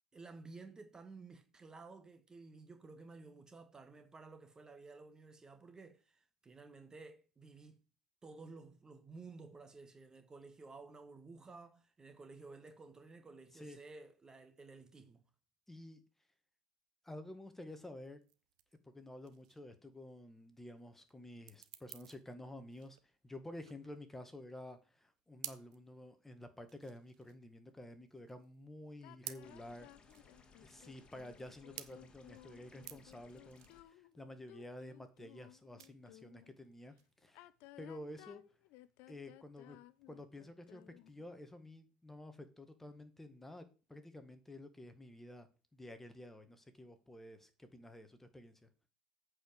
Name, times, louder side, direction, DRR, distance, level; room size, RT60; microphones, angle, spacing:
voice 1, 0.1-7.8 8.2-15.2, right 3 dB, 20° right, 1.5 m, -54 dB
voice 2, 15.7-16.0 17.0-18.2 18.9-23.0 23.2-29.9 30.6-37.0 37.2-37.5 37.8-38.5 39.1-39.8 40.1-45.5 45.7-48.7, left 1 dB, 10° left, 1.7 m, -51 dB
sound 1, 18.2-38.0, right 15 dB, 75° right, 0.9 m, -55 dB
sound 2, 29.0-36.5 37.2-41.2, left 16 dB, 60° left, 0.7 m, -59 dB
sound 3, 29.4-33.8, left 4 dB, 30° left, 2.0 m, -64 dB
8.7 x 4.9 x 7.3 m
hypercardioid pair, 90°, 3 cm